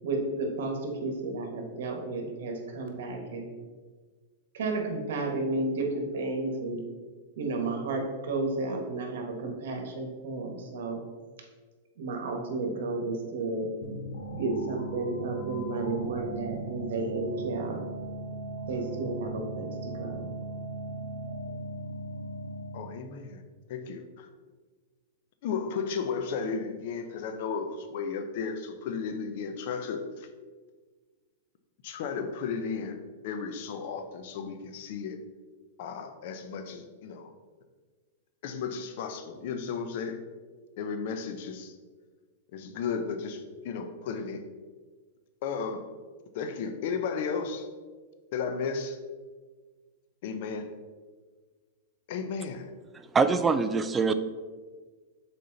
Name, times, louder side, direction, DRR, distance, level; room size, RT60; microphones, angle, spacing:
voice 1, 0.0-3.5 4.5-6.8 7.4-11.0 12.0-13.7 14.3-17.8 18.7-20.3, right 3 dB, 70° right, 3 dB, 1.4 m, -32 dB
sound 1, 13.8-23.0, right 2 dB, 70° left, 1.2 m, -38 dB
voice 2, 22.7-23.4 23.7-24.3 25.4-30.3 31.8-35.2 35.8-37.3 38.4-40.2 40.8-41.8 42.5-44.5 45.4-45.9 46.3-47.7 48.3-49.0 50.2-50.7 52.1-52.7, left 5 dB, 55° left, 8 dB, 0.7 m, -34 dB
voice 3, 52.9-54.1, right 4 dB, 15° right, 9 dB, 0.3 m, -24 dB
6.5 x 4.3 x 3.9 m, 1.4 s
supercardioid pair, 150°, 0 cm